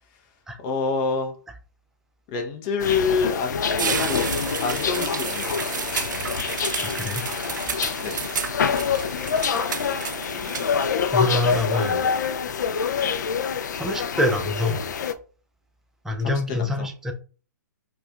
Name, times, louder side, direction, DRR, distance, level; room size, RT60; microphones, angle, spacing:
voice 1, 0.6-1.3 2.3-5.5 8.0-8.1 16.2-16.9, left 5 dB, 30° left, 3 dB, 0.7 m, -27 dB
sound 1, 2.8-15.1, left 6 dB, 65° left, 0.4 m, -26 dB
sound 2, 3.5-10.9, right 7 dB, 70° right, 0.4 m, -31 dB
voice 2, 6.8-7.2 7.8-7.9 11.1-12.0 13.7-14.8 16.0-17.1, left 2 dB, 5° right, 3 dB, 0.4 m, -25 dB
4.7 x 2.3 x 2.3 m, 0.38 s
hypercardioid pair, 130°, 10 cm